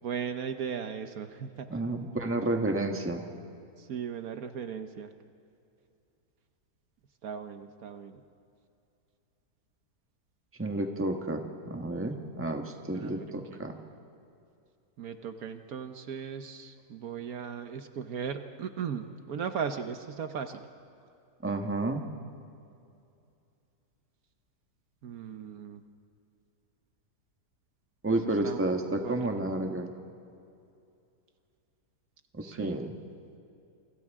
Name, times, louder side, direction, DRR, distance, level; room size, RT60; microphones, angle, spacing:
voice 1, 0.0-1.8 3.8-5.1 7.2-8.2 12.9-13.6 15.0-20.7 25.0-25.8 28.1-28.6 28.9-29.3 32.4-32.8, right 7 dB, 65° right, 8 dB, 1.3 m, -37 dB
voice 2, 1.7-3.2 10.6-13.8 21.4-22.0 28.0-29.9 32.3-33.0, right 2 dB, 10° right, 3 dB, 1.3 m, -31 dB
28.5 x 25.5 x 3.6 m, 2.6 s
omnidirectional pair, 1.7 m